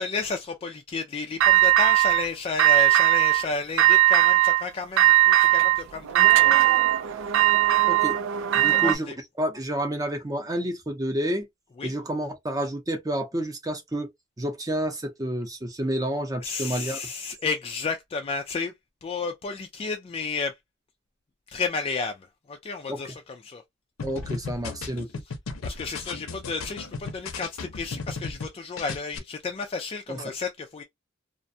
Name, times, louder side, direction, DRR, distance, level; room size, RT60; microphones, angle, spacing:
voice 1, 0.0-6.7 8.7-9.2 11.8-11.9 16.4-18.7 19.0-20.6 21.5-23.6 25.3-25.4 25.6-30.8, left 4 dB, 30° left, 0.3 m, -32 dB
sound 1, 1.4-2.3 2.6-3.5 3.8-4.6 5.0-9.0, right 15 dB, 65° right, 0.3 m, -19 dB
voice 2, 7.9-8.2 8.5-11.5 11.8-14.1 14.4-17.0 22.9-23.1 24.0-25.1 30.1-30.2, right 1 dB, 20° right, 0.6 m, -29 dB
sound 2, 24.0-28.5 28.8-29.2, left 4 dB, 85° left, 0.6 m, -35 dB
2.5 x 2.2 x 2.6 m
head